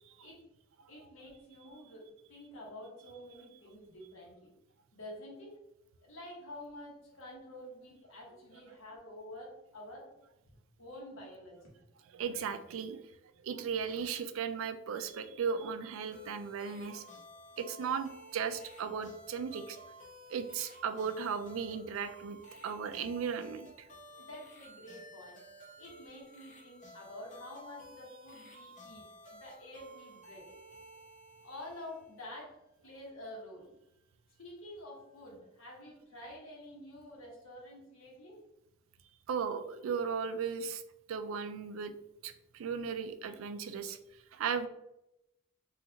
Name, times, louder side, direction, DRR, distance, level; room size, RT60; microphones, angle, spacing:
voice 1, 0.9-4.5 4.9-5.5 6.0-10.1 10.8-11.7 24.2-25.4 25.8-30.5 31.4-32.6 32.8-33.7 34.4-38.4, left 1 dB, 80° left, -2 dB, 1.1 m, -49 dB
voice 2, 12.1-13.0 13.4-17.0 17.6-19.8 20.3-22.4 22.6-23.9 39.3-40.8 41.1-41.9 42.2-44.7, right 6 dB, 85° right, 10 dB, 0.3 m, -36 dB
sound 1, 16.1-32.3, equal, 35° left, 0.8 m, -54 dB
3.8 x 2.4 x 2.8 m, 0.87 s
head